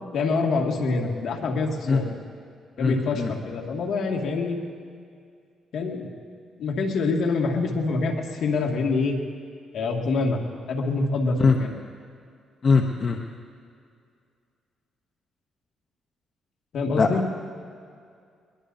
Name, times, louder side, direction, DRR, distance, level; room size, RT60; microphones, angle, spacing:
voice 1, 0.1-2.1 2.8-4.6 5.7-6.1 6.6-9.2 9.7-10.4 10.7-11.7 16.7-17.2, left 3 dB, 70° left, 1 dB, 2.1 m, -25 dB
voice 2, 2.8-3.3 11.4-11.6 12.6-13.2 17.0-17.1, left 4 dB, 40° left, 3 dB, 0.8 m, -21 dB
21.5 x 21.5 x 2.7 m, 2.3 s
cardioid pair, 90°, 0 cm